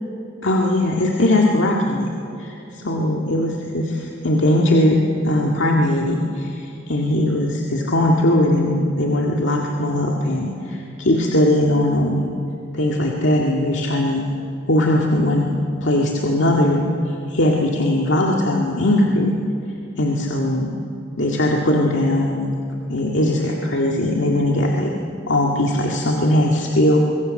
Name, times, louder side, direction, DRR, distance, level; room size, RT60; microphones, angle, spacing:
voice 1, 0.4-2.1 2.4-12.3 12.7-14.2 14.7-15.5 15.8-19.3 20.0-20.8 21.2-22.5 22.9-24.9 25.3-27.0, left 1 dB, 85° left, -1 dB, 1.9 m, -19 dB
23.5 x 23.5 x 6.5 m, 2.8 s
head